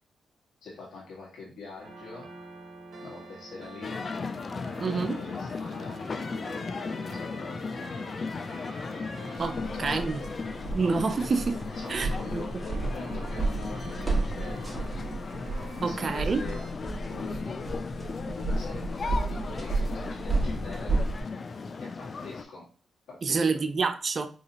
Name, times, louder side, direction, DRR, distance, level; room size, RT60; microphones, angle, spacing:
voice 1, 0.6-2.3 3.0-4.0 4.8-8.0 9.6-10.4 11.7-14.8 15.8-17.6 18.4-21.1 21.8-22.7 23.1-23.6, left 3 dB, 85° left, -3 dB, 1.7 m, -44 dB
sound 1, 1.8-16.7, right 3 dB, 75° right, 0.9 m, -47 dB
sound 2, 3.8-22.4, left 4 dB, 50° left, 0.4 m, -36 dB
voice 2, 4.8-5.2 9.4-10.2 10.7-11.6 11.9-12.4 15.8-16.4 23.2-24.3, right 4 dB, 55° right, 9 dB, 0.5 m, -28 dB
sound 3, 9.4-21.2, right 2 dB, 15° right, 1.6 m, -32 dB
4.7 x 2.5 x 3.0 m, 0.39 s
supercardioid pair, 50°, 0 cm